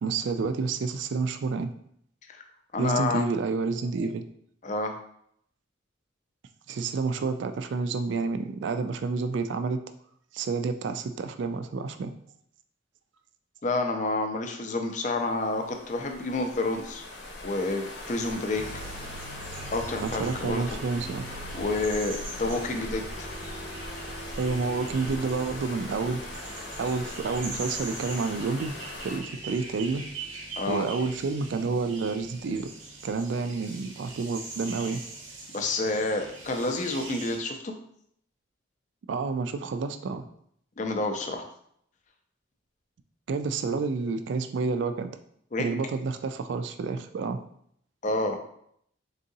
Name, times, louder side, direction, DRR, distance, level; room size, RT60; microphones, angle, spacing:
voice 1, 0.0-1.7 2.8-4.2 6.7-9.8 10.3-12.1 20.0-21.3 24.4-26.2 26.8-28.8 29.0-30.0 30.7-32.7 33.0-35.0 39.1-40.2 43.3-45.1 45.6-47.4, right 4 dB, 65° right, 8 dB, 0.3 m, -29 dB
voice 2, 2.7-3.2 4.6-4.9 13.6-17.0 17.4-18.6 19.7-20.6 21.5-23.3 30.6-30.9 35.5-37.7 40.8-41.5 45.5-45.6 48.0-48.4, left 2 dB, 40° left, 5 dB, 0.5 m, -29 dB
sound 1, 15.0-29.2, left 2 dB, 60° left, 0.8 m, -40 dB
sound 2, 18.5-37.4, right 3 dB, 85° right, 0.8 m, -42 dB
4.0 x 3.7 x 2.7 m, 0.68 s
head